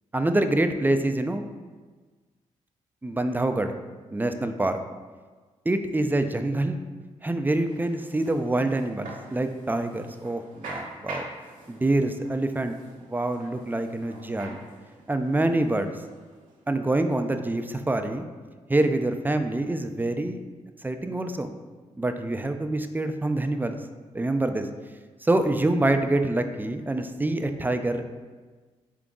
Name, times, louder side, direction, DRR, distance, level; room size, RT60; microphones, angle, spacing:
voice 1, 0.1-1.4 3.0-3.7 4.1-4.8 5.7-6.8 7.2-11.3 11.7-12.8 13.1-14.6 15.1-16.0 16.7-18.3 18.7-20.4 20.8-21.5 22.0-23.8 24.1-24.7 25.2-28.1, right 2 dB, 15° right, 7 dB, 0.4 m, -26 dB
sound 1, 7.6-17.0, right 2 dB, 75° right, 0.8 m, -45 dB
3.7 x 3.6 x 3.7 m, 1.4 s
supercardioid pair, 55°, 13 cm